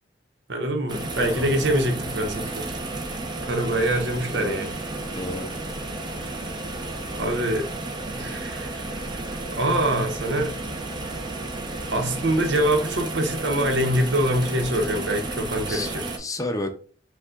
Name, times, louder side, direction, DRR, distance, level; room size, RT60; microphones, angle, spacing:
voice 1, 0.5-2.7 3.4-4.7 6.2-6.4 7.1-7.7 8.1-9.0 9.5-10.5 11.9-16.1, right 1 dB, 80° right, 0.9 m, -24 dB
sound 1, 0.9-16.2, right 2 dB, 25° right, 0.7 m, -32 dB
voice 2, 1.2-1.5 4.3-4.7 5.1-5.6 15.7-15.9 16.2-16.7, left 1 dB, 20° left, 0.5 m, -31 dB
5.4 x 2.3 x 3.7 m
head